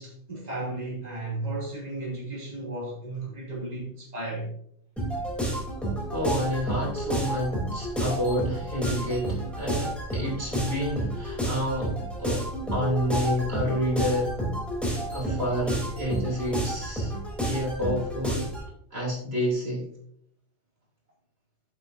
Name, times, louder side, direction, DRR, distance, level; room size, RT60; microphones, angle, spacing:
voice 1, 0.0-4.5, right 2 dB, 30° right, 3.0 m, -34 dB
sound 1, 5.0-18.7, right 1 dB, ahead, 3.4 m, -30 dB
voice 2, 6.1-14.3 15.1-17.1 17.4-18.5 18.9-19.9, equal, 55° right, 3.5 m, -29 dB
14.0 x 7.4 x 2.7 m
omnidirectional pair, 1.3 m